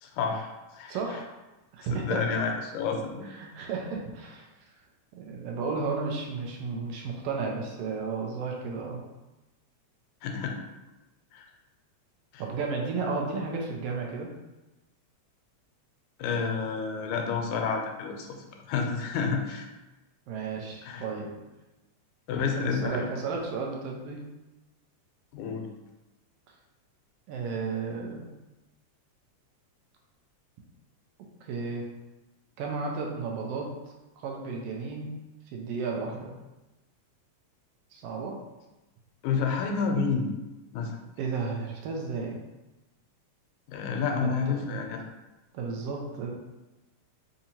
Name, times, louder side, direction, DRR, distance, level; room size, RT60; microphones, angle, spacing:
voice 1, 0.0-1.0 1.9-3.3 10.2-10.6 11.3-11.5 12.3-12.4 16.2-19.7 20.8-21.0 22.3-23.1 25.3-25.7 39.2-40.3 40.7-41.0 43.7-45.0, left 5 dB, 90° left, 2 dB, 2.0 m, -30 dB
voice 2, 0.9-1.3 1.7-2.2 3.3-4.5 5.1-9.0 12.4-14.3 20.3-21.3 22.3-24.2 27.3-28.3 31.4-31.9 32.6-33.7 34.2-35.2 35.5-36.3 37.9-38.4 41.2-42.4 44.1-44.8 45.5-46.3, right 4 dB, 80° right, 0 dB, 1.4 m, -33 dB
4.7 x 2.8 x 2.8 m, 1.0 s
omnidirectional pair, 3.3 m